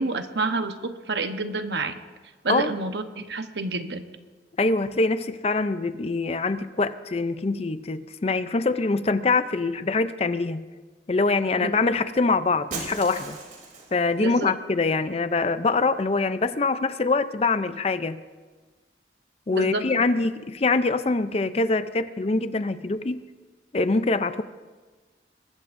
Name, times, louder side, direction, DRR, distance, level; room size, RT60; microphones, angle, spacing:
voice 1, 0.0-1.9 2.4-4.0 11.6-11.7 14.2-14.5 19.5-20.0, right 3 dB, 75° right, 1.0 m, -28 dB
voice 2, 4.6-10.7 11.1-13.4 13.9-18.2 19.5-23.2 23.7-24.4, left 3 dB, 35° left, 0.5 m, -24 dB
Shatter, 12.7-14.0, right 3 dB, 45° right, 3.0 m, -37 dB
22.5 x 20.0 x 2.6 m
head